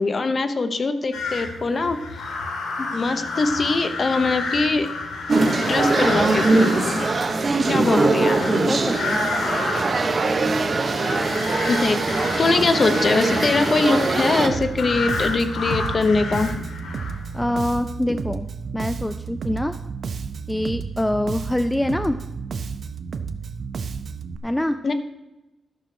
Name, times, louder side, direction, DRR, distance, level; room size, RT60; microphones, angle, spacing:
voice 1, 0.0-2.0 2.8-4.9 5.5-7.0 7.7-8.7 11.7-16.7 24.8-24.9, left 3 dB, 35° left, 9 dB, 0.9 m, -22 dB
sound 1, 1.1-17.4, left 3 dB, 90° left, 2.0 m, -30 dB
sound 2, 5.3-14.5, right 3 dB, 35° right, 1.1 m, -21 dB
voice 2, 7.8-8.3 8.7-9.3 17.3-18.5 18.7-19.7 20.5-22.2 24.4-24.8, left 1 dB, 5° left, 10 dB, 0.4 m, -25 dB
Bass guitar, 14.5-24.4, right 5 dB, 55° right, 0.7 m, -32 dB
12.5 x 6.3 x 6.1 m, 1.0 s
wide cardioid pair, 130°, 0 cm